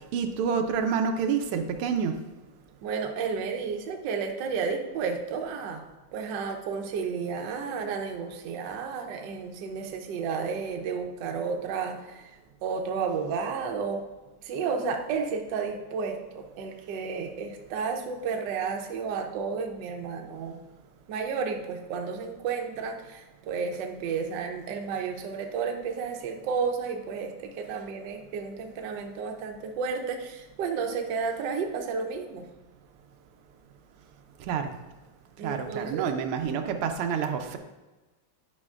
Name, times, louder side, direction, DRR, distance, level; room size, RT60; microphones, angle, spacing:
voice 1, 0.1-2.1 34.5-34.7 35.4-37.6, right 6 dB, 85° right, 5 dB, 1.5 m, -28 dB
voice 2, 2.8-5.8 6.1-12.3 12.6-14.0 14.4-20.6 21.1-32.5 35.4-36.1, right 5 dB, 70° right, 4 dB, 1.2 m, -32 dB
9.7 x 5.2 x 2.4 m, 1.2 s
omnidirectional pair, 2.4 m